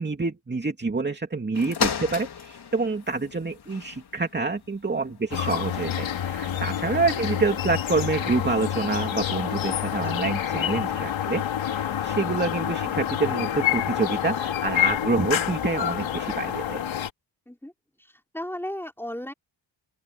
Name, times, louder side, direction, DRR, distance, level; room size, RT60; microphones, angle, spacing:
voice 1, 0.0-16.8, right 3 dB, 25° right, 2.6 m, -27 dB
sound 1, 1.5-11.1 11.8-11.9, left 7 dB, 55° left, 3.6 m, -38 dB
sound 2, 5.3-17.1, left 10 dB, 90° left, 3.6 m, -27 dB
voice 2, 18.0-19.3, left 1 dB, 5° left, 5.0 m, -36 dB
open air
cardioid pair, 110°, 45 cm